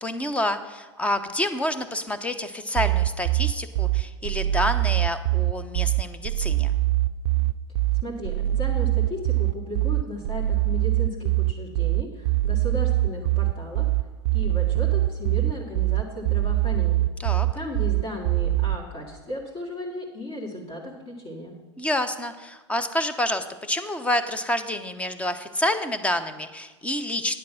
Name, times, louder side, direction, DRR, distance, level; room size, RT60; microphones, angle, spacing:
voice 1, 0.0-6.7 17.2-17.5 21.8-27.4, left 1 dB, 10° left, 11 dB, 0.7 m, -28 dB
sound 1, 2.8-18.8, right 16 dB, 60° right, 0.4 m, -23 dB
voice 2, 8.0-13.9 14.3-17.1 17.5-21.6, left 1 dB, 35° left, -2 dB, 2.0 m, -35 dB
9.8 x 7.4 x 5.6 m, 1.3 s
hypercardioid pair, 110°, 15 cm